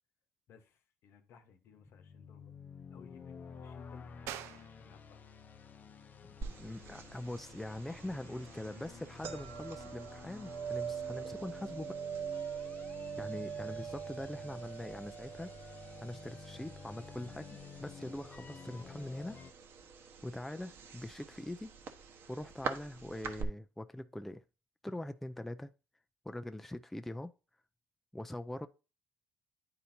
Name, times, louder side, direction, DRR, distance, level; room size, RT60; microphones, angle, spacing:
voice 1, 0.5-2.5 2.9-5.2, left 7 dB, 65° left, 1.0 m, -60 dB
sound 1, 1.7-19.5, left 6 dB, 40° left, 0.6 m, -51 dB
sound 2, 4.3-14.5, right 11 dB, 85° right, 0.4 m, -55 dB
sound 3, 6.4-23.4, right 7 dB, 60° right, 1.0 m, -44 dB
voice 2, 6.6-12.0 13.2-15.5 16.0-19.4 20.2-21.7 22.3-24.4 24.8-25.7 26.2-27.3 28.1-28.7, left 1 dB, 5° left, 0.4 m, -43 dB
9.5 x 4.3 x 2.7 m
cardioid pair, 105°, 5 cm